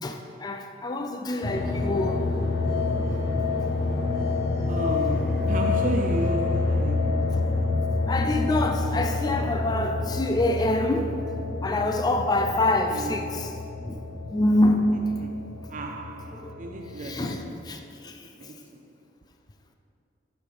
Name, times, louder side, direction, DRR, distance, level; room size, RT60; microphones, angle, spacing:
voice 1, 0.0-2.3 7.5-7.6 8.1-11.1 11.6-13.5 13.9-14.0 14.3-14.9 16.4-16.6 17.0-18.2, left 1 dB, 20° left, 0.4 m, -26 dB
sound 1, 1.4-17.5, left 3 dB, 60° left, 0.7 m, -28 dB
voice 2, 4.7-7.8 12.9-13.5 15.2-15.3 15.7-17.5 18.0-18.1 18.4-18.8, right 2 dB, 45° right, 0.4 m, -34 dB
6.7 x 5.1 x 4.9 m
head